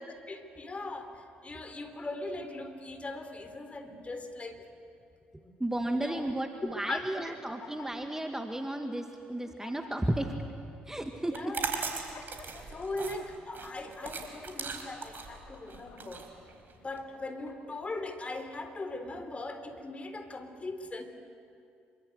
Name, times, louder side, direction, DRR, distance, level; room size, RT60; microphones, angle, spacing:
voice 1, 0.0-4.6 5.4-5.5 6.0-6.3 6.8-7.4 11.3-11.7 12.4-16.3 16.7-21.0, left 2 dB, 25° left, 7 dB, 3.8 m, -40 dB
voice 2, 5.6-10.4 10.9-11.5, right 1 dB, 10° right, 5 dB, 1.8 m, -33 dB
sound 1, 7.3-8.5 9.1-9.2 9.5-10.5 11.1-11.3 11.7-13.3 13.7-14.5 15.0-16.2 16.8-17.8, left 5 dB, 50° left, 3.7 m, -51 dB
sound 2, 11.2-17.0, right 5 dB, 45° right, 4.3 m, -38 dB
26.0 x 24.0 x 8.0 m, 2.5 s
figure-of-eight pair, 50°, 5 cm